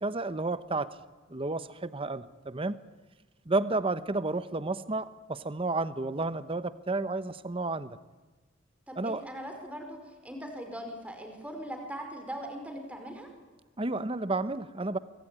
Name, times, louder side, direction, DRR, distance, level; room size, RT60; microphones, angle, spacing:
voice 1, 0.0-1.0 1.3-2.8 3.5-8.0 9.0-9.2 13.8-15.0, right 2 dB, 25° right, 13 dB, 0.9 m, -31 dB
voice 2, 8.9-13.3, equal, 5° right, 4 dB, 5.2 m, -40 dB
25.0 x 24.0 x 9.9 m, 1.3 s
head